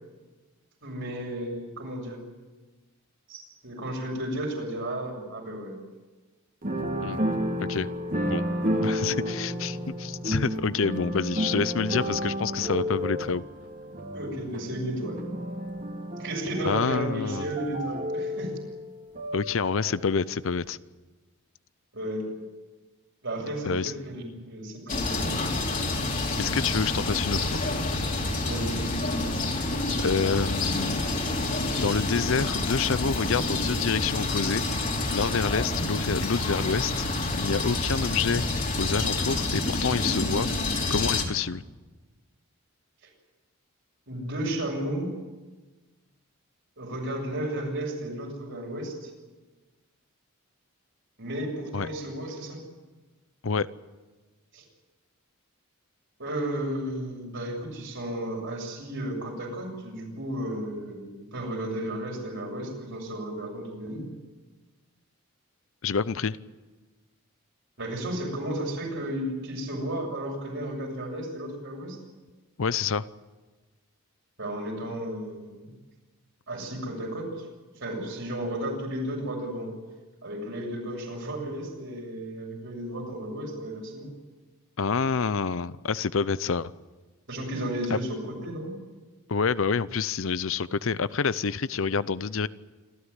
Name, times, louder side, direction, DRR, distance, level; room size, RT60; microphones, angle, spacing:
voice 1, 0.8-2.2 3.3-5.8 14.1-15.3 16.2-18.5 21.9-22.4 23.2-25.6 28.4-28.8 44.1-45.1 46.8-49.1 51.2-52.6 54.5-54.6 56.2-64.1 67.8-72.0 74.4-75.8 76.5-77.5 77.8-79.7 80.2-84.1 87.3-88.8, right 1 dB, 60° right, 0 dB, 7.1 m, -33 dB
sound 1, 6.6-20.3 20.6-20.7, equal, 40° right, 2.6 m, -32 dB
voice 2, 8.8-13.4 16.6-17.4 19.3-20.8 23.6-23.9 26.4-27.6 29.5-29.7 30.0-31.0 31.8-34.8 35.1-38.5 38.8-40.5 40.9-41.6 51.7-51.9 53.4-53.7 65.8-66.4 72.6-73.1 84.8-86.7 87.9-88.0 89.3-92.5, left 5 dB, 60° left, 17 dB, 0.6 m, -27 dB
sound 2, 24.9-41.3, left 2 dB, 40° left, 3.3 m, -28 dB
27.5 x 13.5 x 9.7 m, 1.3 s
head